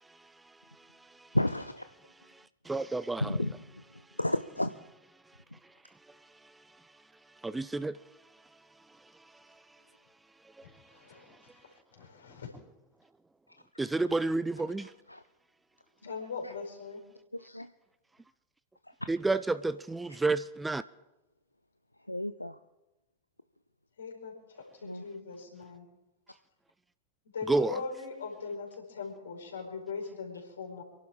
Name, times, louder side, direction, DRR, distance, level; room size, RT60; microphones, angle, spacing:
voice 1, 1.3-1.9 3.2-4.7 14.8-15.2 17.3-17.7 22.1-22.6 24.8-25.0, left 1 dB, 85° left, 11 dB, 0.5 m, -32 dB
voice 2, 2.7-3.2 7.8-7.9 13.8-14.4 14.7-14.8 19.1-19.4 20.0-20.4 20.6-20.8 27.5-27.7, right 3 dB, 10° right, 16 dB, 0.4 m, -28 dB
voice 3, 10.6-11.4 11.6-12.5 16.0-17.0 24.0-25.9 27.3-30.8, left 5 dB, 70° left, 0 dB, 4.9 m, -40 dB
28.0 x 11.5 x 3.6 m, 0.99 s
figure-of-eight pair, 90°, 0 cm